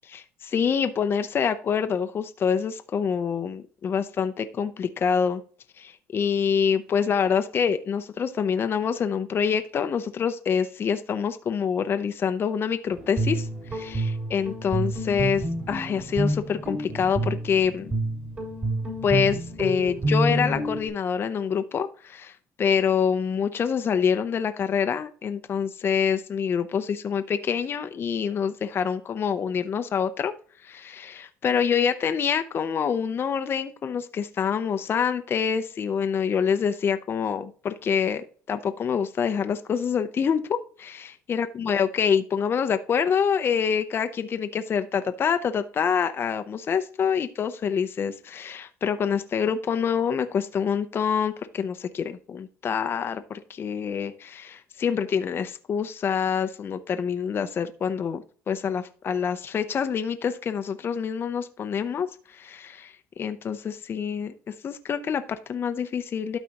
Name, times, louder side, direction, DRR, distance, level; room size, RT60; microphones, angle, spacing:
voice 1, 0.1-5.4 5.8-17.9 19.0-30.3 30.6-66.4, left 7 dB, 40° left, 8 dB, 0.6 m, -26 dB
Guitar, 12.9-20.9, right 1 dB, 30° right, 3.8 m, -28 dB
12.0 x 4.1 x 2.9 m, 0.42 s
supercardioid pair, 95°, 6 cm